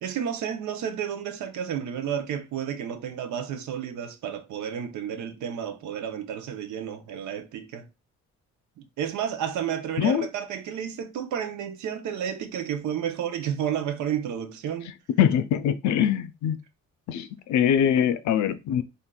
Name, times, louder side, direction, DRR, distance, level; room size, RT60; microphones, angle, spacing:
voice 1, 0.0-7.9 8.8-14.9, right 9 dB, 75° right, 0.7 m, -31 dB
voice 2, 15.2-16.6 17.1-18.8, left 9 dB, 70° left, 0.5 m, -23 dB
3.7 x 2.5 x 2.2 m
cardioid pair, 90°, 30 cm